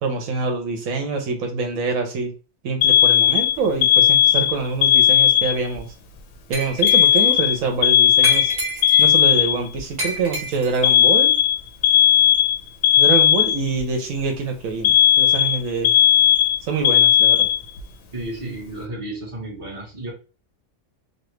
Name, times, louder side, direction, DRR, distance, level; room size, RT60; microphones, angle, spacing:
voice 1, 0.0-2.3 2.6-5.9 6.5-8.5 9.0-11.3 13.0-15.9 16.6-17.5, right 4 dB, 75° right, 4 dB, 1.0 m, -25 dB
Alarm, 2.8-5.8 6.8-9.8 10.8-13.8 14.8-17.8, left 11 dB, 65° left, 0.7 m, -16 dB
Glass, 6.5-7.3 8.2-9.2 10.0-10.9, right 1 dB, 45° right, 1.3 m, -29 dB
voice 2, 18.1-20.1, right 1 dB, 25° right, -2 dB, 1.0 m, -32 dB
3.2 x 2.2 x 3.1 m, 0.34 s
omnidirectional pair, 1.4 m